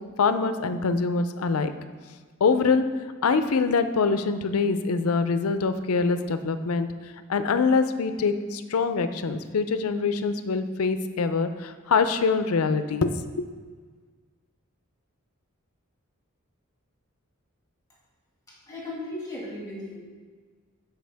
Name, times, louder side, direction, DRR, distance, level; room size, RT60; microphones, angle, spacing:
voice 1, 0.2-1.7 2.4-2.8 3.2-6.9 7.3-13.4, left 4 dB, 85° left, 10 dB, 0.5 m, -24 dB
voice 2, 18.7-20.0, left 1 dB, 15° left, -6 dB, 2.0 m, -36 dB
11.5 x 4.7 x 3.4 m, 1.5 s
head